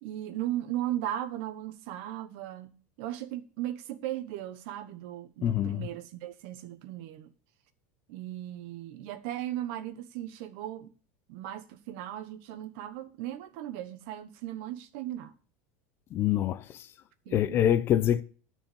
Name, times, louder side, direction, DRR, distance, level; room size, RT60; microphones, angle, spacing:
voice 1, 0.0-2.7 3.0-7.3 8.1-10.9 11.3-15.3 17.2-17.6, right 13 dB, 65° right, 1.1 m, -37 dB
voice 2, 5.4-5.9 16.1-16.6 17.3-18.2, left 10 dB, 35° left, 0.6 m, -25 dB
12.5 x 4.7 x 7.2 m
supercardioid pair, 150°, 7 cm